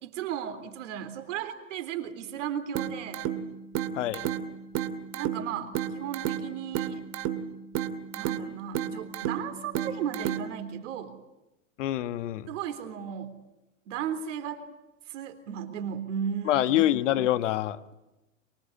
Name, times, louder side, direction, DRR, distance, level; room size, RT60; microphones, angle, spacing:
voice 1, 0.0-3.3 5.1-7.0 8.2-11.2 12.5-13.4 13.9-14.6 15.1-16.9, right 8 dB, 70° right, 10 dB, 3.7 m, -35 dB
Síncopa Suave, 2.8-10.8, right 9 dB, 45° right, 2.2 m, -33 dB
voice 2, 3.9-4.3 11.8-12.5 16.5-17.9, left 13 dB, 70° left, 13 dB, 1.5 m, -26 dB
24.0 x 23.5 x 9.9 m, 0.98 s
hypercardioid pair, 110°, 38 cm